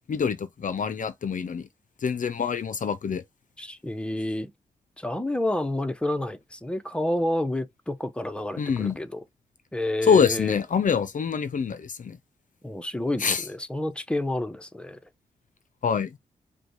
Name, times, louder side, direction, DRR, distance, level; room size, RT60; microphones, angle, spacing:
voice 1, 0.1-1.7 2.0-3.2 8.6-9.0 10.1-12.2 13.2-13.4 15.8-16.2, left 6 dB, 50° left, 0.6 m, -25 dB
voice 2, 3.6-4.5 5.0-9.2 9.7-10.6 12.6-15.0, left 1 dB, 5° left, 0.8 m, -29 dB
5.0 x 2.3 x 4.6 m
supercardioid pair, 45°, 17 cm